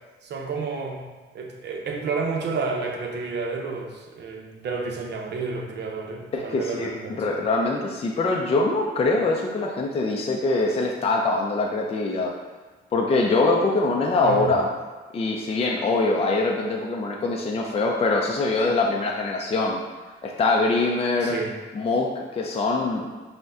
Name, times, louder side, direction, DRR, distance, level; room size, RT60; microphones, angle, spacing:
voice 1, 0.2-1.1 1.3-7.4 14.2-14.5 21.2-21.5, right 4 dB, 60° right, 1 dB, 0.7 m, -30 dB
voice 2, 6.3-6.9 7.2-12.3 12.9-14.7 15.1-19.8 20.2-21.4 21.7-23.1, left 3 dB, 30° left, -1 dB, 0.5 m, -23 dB
5.1 x 2.2 x 3.7 m, 1.3 s
cardioid pair, 90°, 20 cm